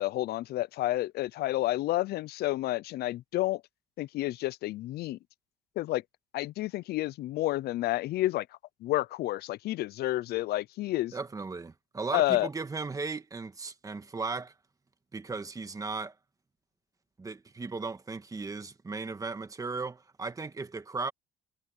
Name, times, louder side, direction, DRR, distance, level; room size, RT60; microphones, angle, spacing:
voice 1, 0.0-3.6 4.0-5.2 5.8-6.0 6.3-8.5 8.8-11.1 12.1-12.5, left 16 dB, 70° left, 0.6 m, -30 dB
voice 2, 11.1-14.5 15.1-16.2 17.2-21.1, right 4 dB, 20° right, 1.7 m, -36 dB
cardioid pair, 110°, 17 cm